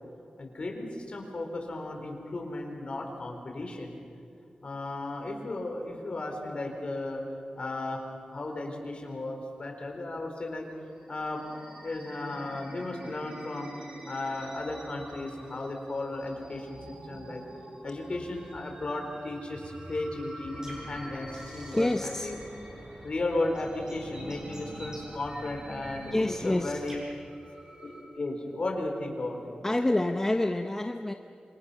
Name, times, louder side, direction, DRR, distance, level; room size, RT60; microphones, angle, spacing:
voice 1, 0.4-4.0 4.6-7.2 7.6-10.7 11.1-13.7 14.0-16.8 17.1-17.4 17.8-22.4 23.0-27.0 27.8-29.6, left 2 dB, 45° left, 2 dB, 4.2 m, -35 dB
sound 1, 10.7-28.0, right 1 dB, 45° right, 6.4 m, -47 dB
sound 2, 20.5-27.0, right 1 dB, 25° right, 6.5 m, -47 dB
voice 2, 21.7-22.3 26.1-26.8 29.6-31.1, left 1 dB, 20° left, 5 dB, 0.8 m, -27 dB
27.0 x 26.0 x 5.7 m, 2.6 s
wide cardioid pair, 140°, 3 cm